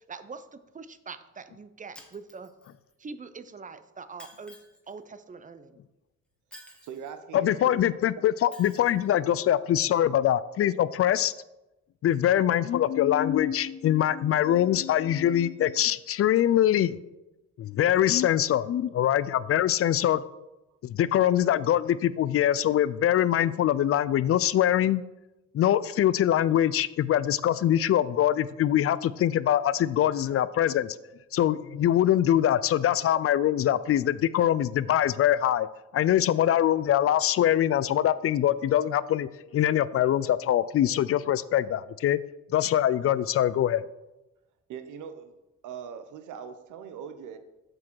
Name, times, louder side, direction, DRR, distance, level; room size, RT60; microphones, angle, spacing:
voice 1, 0.0-2.5 3.0-4.6 4.9-5.8, right 4 dB, 25° right, 12 dB, 0.6 m, -43 dB
Shatter, 1.9-2.9 4.2-4.9 6.5-7.2 8.5-9.1, equal, 5° left, 1.2 m, -51 dB
voice 2, 6.8-7.9 9.3-9.4 44.7-45.3 45.6-47.4, right 7 dB, 80° right, 9 dB, 0.8 m, -41 dB
voice 3, 7.3-11.3 12.0-17.0 17.6-20.2 20.8-25.0 25.5-31.0 31.3-35.7 35.9-42.2 42.5-43.8, left 11 dB, 50° left, 17 dB, 0.4 m, -23 dB
7.6 x 6.2 x 4.6 m, 0.99 s
cardioid pair, 90°, 30 cm